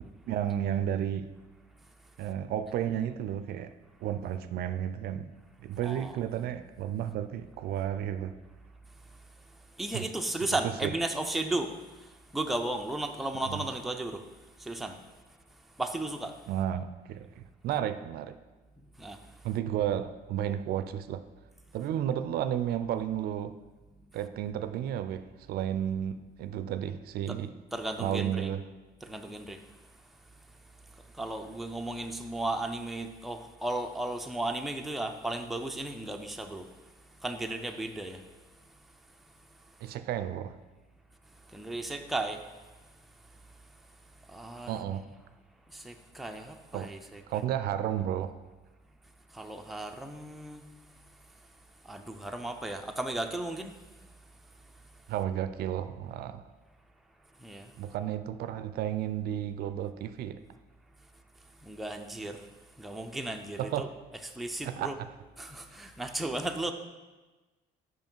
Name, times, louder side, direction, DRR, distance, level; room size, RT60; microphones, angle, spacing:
voice 1, 0.3-1.3 2.2-3.7 4.0-5.3 5.6-8.3 9.9-10.1 10.6-10.9 13.5-13.6 16.5-18.4 19.4-21.2 21.7-23.6 24.1-27.5 28.0-28.6 39.8-40.5 44.7-45.0 46.7-46.9 47.3-48.4 55.1-56.5 57.8-60.4 63.6-63.9 64.6-65.1, right 10 dB, 65° right, 12 dB, 0.4 m, -32 dB
voice 2, 5.8-6.2 9.8-11.7 12.3-14.2 14.6-14.9 15.8-16.3 19.0-19.2 27.3-27.4 27.7-28.5 29.0-29.6 31.2-36.7 37.2-38.2 41.5-42.4 44.3-44.8 45.7-47.4 49.3-50.6 51.9-53.8 57.4-57.7 61.6-62.4 62.8-63.9 64.2-65.0 65.4-66.7, right 2 dB, ahead, 4 dB, 0.4 m, -35 dB
5.5 x 5.5 x 4.5 m, 1.2 s
cardioid pair, 110°, 17 cm